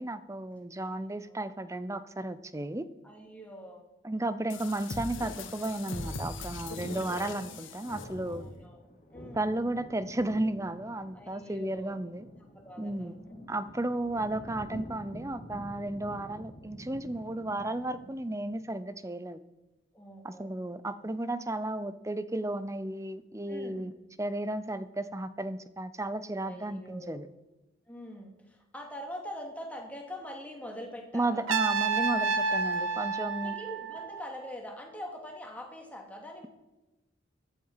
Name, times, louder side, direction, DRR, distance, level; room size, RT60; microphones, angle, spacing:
voice 1, 0.0-2.9 4.0-8.5 9.3-12.2 12.8-13.1 13.5-19.4 20.2-23.9 24.2-27.3 31.1-33.5, right 1 dB, 15° right, 13 dB, 0.6 m, -34 dB
voice 2, 3.0-4.5 6.6-7.2 8.2-8.8 9.1-9.5 11.1-12.0 12.5-13.5 19.9-20.5 23.5-24.0 26.4-27.2 27.9-31.5 32.9-33.0 33.4-36.5, equal, 5° left, 1 dB, 2.6 m, -44 dB
sound 1, 4.5-8.7, left 3 dB, 75° left, 1.6 m, -40 dB
sound 2, 8.4-18.5, equal, 40° left, 2.8 m, -48 dB
Trumpet, 31.5-34.5, right 4 dB, 80° right, 1.1 m, -30 dB
15.0 x 10.5 x 5.7 m, 1.0 s
head